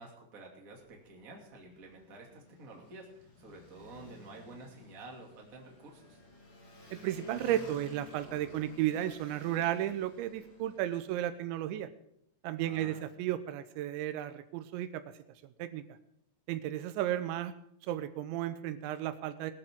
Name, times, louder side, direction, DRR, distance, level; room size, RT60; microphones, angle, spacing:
voice 1, 0.0-6.2 12.6-13.0, right 2 dB, 25° right, 0 dB, 2.0 m, -50 dB
Motorcycle, 0.7-11.4, left 2 dB, 55° left, 5.0 m, -54 dB
voice 2, 6.9-11.9 12.4-15.1 15.4-16.0 16.5-17.6 17.8-19.5, right 12 dB, 85° right, 11 dB, 3.1 m, -34 dB
21.0 x 12.0 x 3.7 m, 0.71 s
omnidirectional pair, 5.2 m